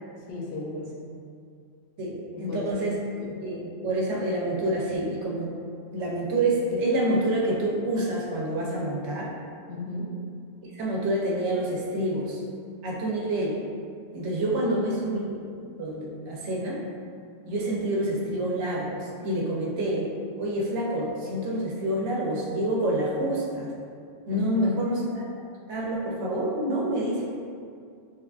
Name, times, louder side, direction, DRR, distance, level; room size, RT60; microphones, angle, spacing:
voice 1, 0.2-1.0 2.3-3.3 9.7-10.1 14.6-14.7 24.3-24.6, left 2 dB, 65° left, -4 dB, 0.7 m, -35 dB
voice 2, 2.0-3.0 3.4-5.5 5.9-9.3 10.6-12.4 12.8-13.6 14.1-16.8 17.5-20.1 20.4-23.7 24.3-25.3 25.7-27.2, right 1 dB, 90° right, -3 dB, 0.9 m, -27 dB
3.1 x 2.3 x 2.3 m, 2.3 s
omnidirectional pair, 1.1 m